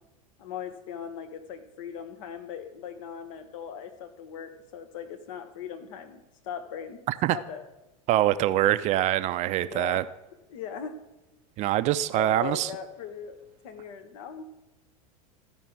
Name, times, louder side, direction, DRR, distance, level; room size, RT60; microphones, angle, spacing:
voice 1, 0.4-7.0 7.3-7.6 9.6-10.0 10.5-11.0 12.2-14.4, left 7 dB, 60° left, 1.1 m, -39 dB
voice 2, 8.1-10.0 11.6-12.7, right 13 dB, 40° right, 0.4 m, -24 dB
14.0 x 5.3 x 4.7 m
hypercardioid pair, 90°, 19 cm